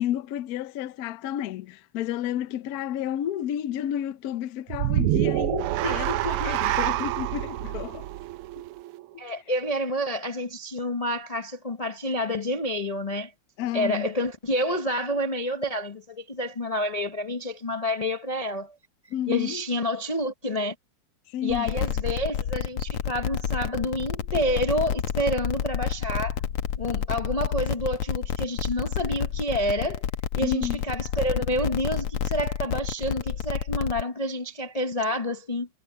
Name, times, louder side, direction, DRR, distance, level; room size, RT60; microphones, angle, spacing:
voice 1, 0.0-8.1 13.6-14.1 19.1-19.6 21.3-21.8 30.4-30.8, left 11 dB, 65° left, 0.9 m, -31 dB
sound 1, 4.7-9.1, right 15 dB, 85° right, 1.5 m, -27 dB
voice 2, 9.2-13.3 13.7-18.7 19.3-20.7 21.4-26.4 26.8-30.1 30.3-35.7, equal, 40° left, 0.5 m, -28 dB
sound 2, 21.5-34.0, left 9 dB, 85° left, 2.0 m, -29 dB
omnidirectional pair, 2.4 m